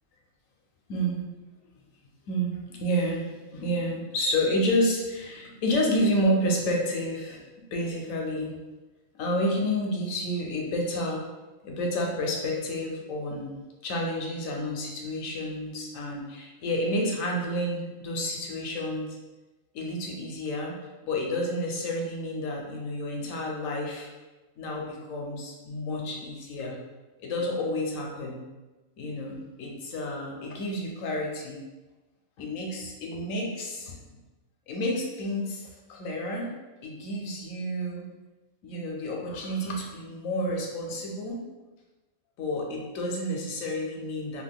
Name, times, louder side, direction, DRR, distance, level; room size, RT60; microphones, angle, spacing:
voice 1, 0.9-1.2 2.3-7.4 7.7-8.5 9.1-11.2 11.6-13.6 13.8-19.2 19.7-20.8 21.0-24.1 24.6-26.8 27.2-28.4 29.0-31.6 32.4-34.0 34.7-36.5 36.8-38.1 38.6-41.4 42.4-44.4, equal, 80° left, -1 dB, 1.0 m, -30 dB
2.8 x 2.2 x 3.4 m, 1.2 s
omnidirectional pair, 1.4 m